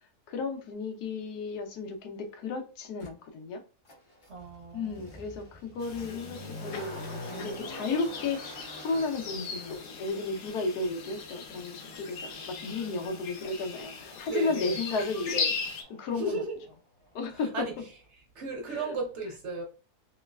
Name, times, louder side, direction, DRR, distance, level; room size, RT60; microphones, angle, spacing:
voice 1, 0.3-3.6 4.7-16.5 17.1-17.9 18.7-19.0, left 3 dB, 90° left, 1.2 m, -34 dB
Motor vehicle (road), 3.0-3.1 3.9-16.8 17.1-17.2, left 1 dB, 45° left, 0.4 m, -46 dB
voice 2, 4.3-5.1 14.3-14.8 16.1-16.6 17.5-17.7 18.3-19.6, right 2 dB, 60° right, 0.9 m, -34 dB
sound 1, 5.8-15.8, left 5 dB, 70° left, 0.9 m, -38 dB
3.1 x 3.0 x 2.2 m
omnidirectional pair, 1.6 m